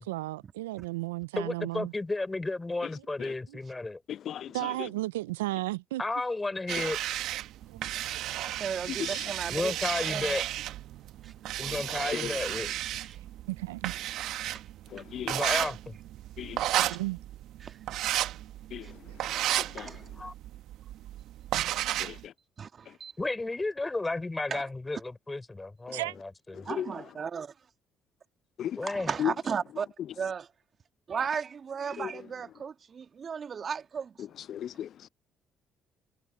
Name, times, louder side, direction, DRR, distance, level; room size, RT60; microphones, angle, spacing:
voice 1, 0.0-1.9 4.5-6.0 7.7-7.8 8.5-8.6 9.1-9.2 13.5-13.9 16.7-17.2 19.0-19.2 19.6-19.7 25.9-26.1, right 19 dB, 90° right, 0.4 m, -34 dB
voice 2, 1.4-4.0 6.0-7.0 9.5-10.4 11.6-12.7 15.3-16.0 20.2-20.3 23.2-26.7 28.8-29.1, left 2 dB, 20° left, 4.1 m, -33 dB
voice 3, 4.1-4.9 8.9-9.3 11.7-11.8 12.1-12.4 14.9-15.5 16.4-16.9 18.7-20.1 22.0-22.3 22.9-23.0 25.9-26.0 26.5-27.1 28.6-28.8 29.2-29.3 32.0-32.2 34.2-35.1, left 10 dB, 60° left, 0.6 m, -37 dB
sound 1, 6.7-22.2, right 13 dB, 70° right, 1.2 m, -33 dB
voice 4, 8.6-9.7 10.1-10.4 18.1-18.2 19.3-20.0 22.6-22.7 23.0-23.1 24.5-24.6 26.7-27.5 28.8-29.9 30.2-30.4 31.1-34.1, right 6 dB, 45° right, 1.9 m, -35 dB
hypercardioid pair, 55°, 0 cm